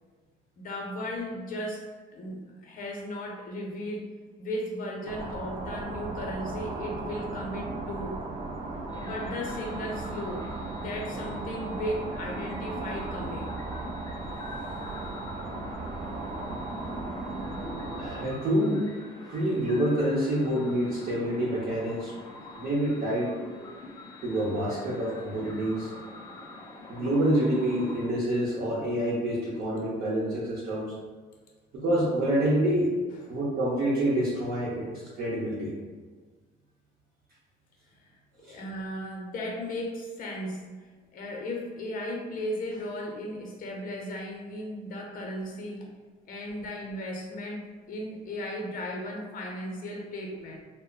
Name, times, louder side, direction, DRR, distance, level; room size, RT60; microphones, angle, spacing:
voice 1, 0.6-1.8 2.1-4.1 4.4-8.2 9.0-10.5 10.8-13.6 38.0-38.2 38.5-40.7 41.1-45.9 46.3-50.6, left 1 dB, 55° left, -1 dB, 0.7 m, -36 dB
sound 1, 5.1-18.3, right 2 dB, 40° right, 0.4 m, -36 dB
sound 2, 8.9-28.1, left 2 dB, 20° left, 0.5 m, -45 dB
voice 2, 18.0-18.8 19.3-22.1 22.5-23.3 24.2-25.9 26.9-30.9 31.7-32.9 33.3-34.9 35.1-35.7 38.4-38.6, right 1 dB, 60° right, -9 dB, 0.7 m, -27 dB
2.1 x 2.1 x 3.8 m, 1.4 s
cardioid pair, 110°, 17 cm